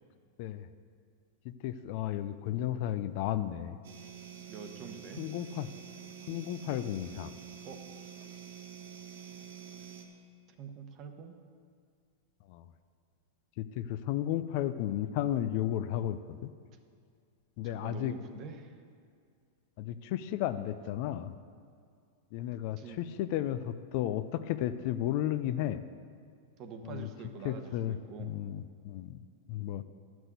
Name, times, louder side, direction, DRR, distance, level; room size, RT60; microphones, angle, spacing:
voice 1, 0.4-0.7 1.4-3.8 5.2-5.7 6.3-7.3 12.5-12.6 13.6-16.5 17.6-18.2 19.8-21.3 22.3-25.8 26.8-27.1 27.4-29.2 29.5-29.8, left 12 dB, 50° left, 12 dB, 0.5 m, -33 dB
sound 1, 3.8-10.0, right 8 dB, 70° right, 1.4 m, -47 dB
voice 2, 4.5-5.3 7.6-7.8 10.6-11.4 17.6-18.8 22.8-23.1 26.6-28.3, right 5 dB, 35° right, 6 dB, 1.1 m, -45 dB
11.0 x 6.1 x 8.1 m, 2.2 s
supercardioid pair, 140°, 0 cm